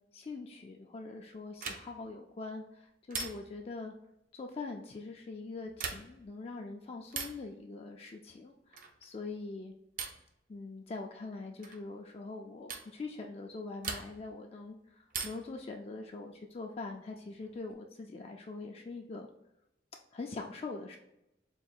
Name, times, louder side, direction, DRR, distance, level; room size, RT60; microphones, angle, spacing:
voice 1, 0.1-3.9 4.3-9.7 10.5-19.3 20.1-21.0, left 3 dB, 35° left, 2 dB, 0.3 m, -43 dB
sound 1, 1.6-2.1 3.1-3.7 5.7-6.3 7.1-7.5 8.7-9.1 10.0-10.3 11.6-11.8 12.7-12.9 13.8-14.4 15.1-15.6 17.1-17.7, right 5 dB, 50° right, 0.5 m, -41 dB
3.8 x 2.4 x 4.4 m, 0.86 s
head